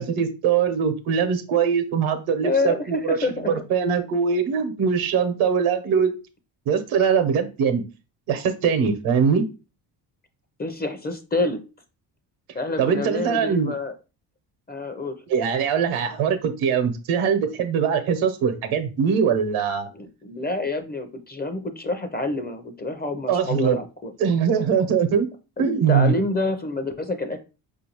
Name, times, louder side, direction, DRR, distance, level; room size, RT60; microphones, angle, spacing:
voice 1, 0.0-3.2 3.5-6.1 6.7-7.8 8.3-9.4 12.8-13.7 15.3-19.9 23.3-23.8 24.2-25.3 25.6-26.1, right 6 dB, 75° right, 8 dB, 0.9 m, -22 dB
voice 2, 2.4-3.5 10.6-11.6 12.5-13.9 14.7-15.2 19.9-24.1 25.6-27.4, left 2 dB, 20° left, 8 dB, 0.5 m, -27 dB
4.6 x 2.7 x 2.9 m, 0.31 s
cardioid pair, 80°, 48 cm